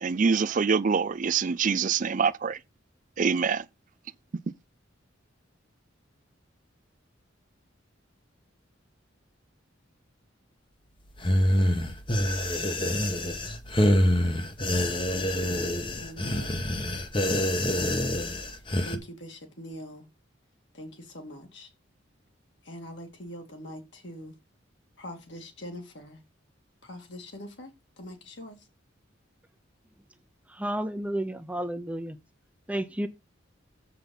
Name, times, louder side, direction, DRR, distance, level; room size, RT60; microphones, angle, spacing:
voice 1, 0.0-2.6 3.2-3.6, right 5 dB, 40° right, 0.4 m, -25 dB
sound 1, 11.2-19.0, left 1 dB, 25° left, 1.1 m, -26 dB
voice 2, 15.1-16.6 17.6-18.1 18.5-20.0 20.7-21.7 22.6-24.3 25.0-26.2 26.8-27.7 28.0-28.7, equal, 60° left, 2.5 m, -43 dB
voice 3, 30.5-32.2 32.7-33.1, right 1 dB, 5° right, 0.7 m, -31 dB
7.6 x 5.8 x 5.4 m
head